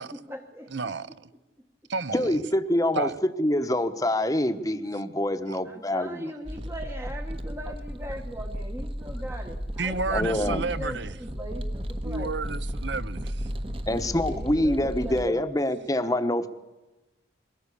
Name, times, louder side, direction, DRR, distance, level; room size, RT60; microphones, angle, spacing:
voice 1, 0.0-0.7 5.6-12.3 14.2-15.5, equal, 15° right, 1.1 m, -39 dB
voice 2, 0.7-1.0 1.9-2.4 3.0-3.2 5.5-5.6 9.8-11.2 12.0-13.5, right 4 dB, 70° right, 0.8 m, -31 dB
voice 3, 2.1-6.2 10.1-10.7 13.9-16.5, left 1 dB, 20° left, 1.1 m, -26 dB
sound 1, 6.4-15.3, equal, 30° right, 1.2 m, -34 dB
22.0 x 18.0 x 8.5 m
head